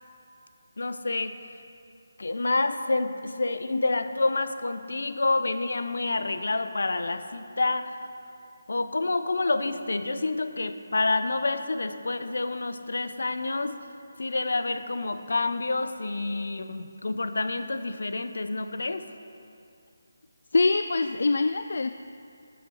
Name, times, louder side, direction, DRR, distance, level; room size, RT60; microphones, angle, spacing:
voice 1, 0.8-1.3 2.2-8.0 8.7-13.8 14.2-19.1, left 3 dB, 75° left, 10 dB, 0.7 m, -28 dB
voice 2, 20.5-21.9, left 3 dB, 60° left, 9 dB, 0.3 m, -23 dB
13.0 x 7.2 x 4.7 m, 2.5 s
hypercardioid pair, 175°, 0 cm